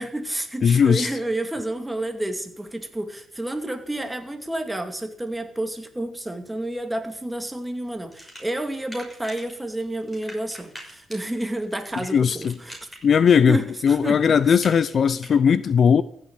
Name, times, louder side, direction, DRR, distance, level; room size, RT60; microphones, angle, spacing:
voice 1, 0.0-12.8 13.5-14.2 14.5-14.6, right 1 dB, 10° right, 2.4 m, -30 dB
voice 2, 0.6-1.1 12.1-12.5 13.0-13.6 13.8-16.0, left 7 dB, 50° left, 0.6 m, -18 dB
sound 1, 8.1-9.5 9.8-15.3, equal, 10° left, 6.1 m, -43 dB
15.5 x 7.6 x 8.9 m
cardioid pair, 90°, 0 cm